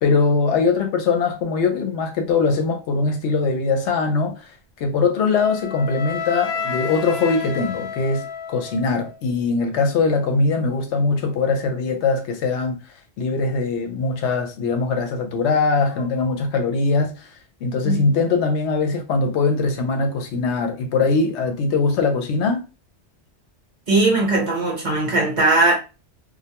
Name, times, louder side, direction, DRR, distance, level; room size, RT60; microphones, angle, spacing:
voice 1, 0.0-4.5 4.8-12.8 13.2-17.3 17.6-22.6, left 4 dB, 75° left, 0.8 m, -21 dB
Wind instrument woodwind instrument, 5.2-9.3, left 5 dB, 25° left, 0.9 m, -31 dB
voice 2, 23.9-25.7, right 2 dB, 45° right, 0.9 m, -19 dB
2.2 x 2.1 x 2.8 m
omnidirectional pair, 1.2 m